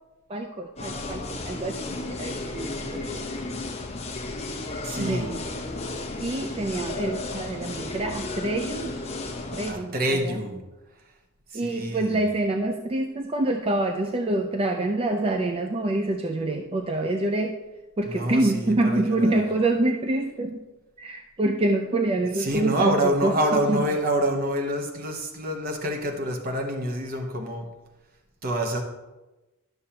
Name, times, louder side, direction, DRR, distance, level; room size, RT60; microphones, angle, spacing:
voice 1, 0.3-3.2 5.0-5.4 6.2-8.9 9.5-10.0 10.2-10.4 11.5-17.6 18.0-20.6 21.0-22.9 23.2-23.3 23.7-23.8, right 2 dB, 25° right, 4 dB, 0.4 m, -26 dB
sound 1, 0.8-9.7, left 2 dB, 30° left, 0.9 m, -33 dB
voice 2, 4.8-5.4 9.7-10.6 11.5-12.2 18.1-19.5 22.3-27.7 28.4-28.8, right 1 dB, 40° right, 3 dB, 0.9 m, -27 dB
11.5 x 6.4 x 2.9 m, 1.1 s
head